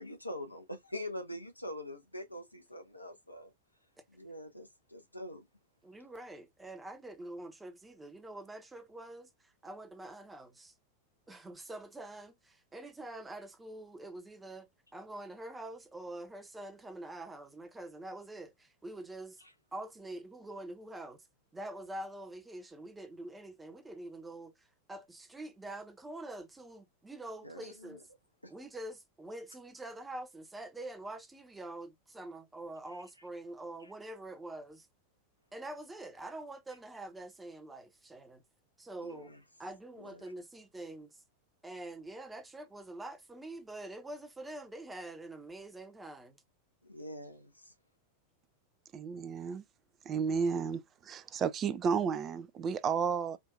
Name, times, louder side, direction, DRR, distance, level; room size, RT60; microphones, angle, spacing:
voice 1, 0.0-3.5 4.1-5.4 19.4-19.5 27.4-28.0 28.4-28.5 32.9-33.0 33.8-33.9 39.0-39.4 40.0-40.2 46.8-47.7, left 1 dB, 85° left, 1.1 m, -44 dB
voice 2, 5.8-10.7 11.3-19.4 19.7-21.2 21.5-28.0 28.5-34.9 35.5-38.4 38.8-39.3 39.6-41.2 41.6-46.4, right 1 dB, 10° right, 1.0 m, -45 dB
voice 3, 48.9-49.6 50.1-53.4, right 6 dB, 25° right, 0.5 m, -32 dB
5.0 x 2.7 x 2.3 m
figure-of-eight pair, 90°, 0 cm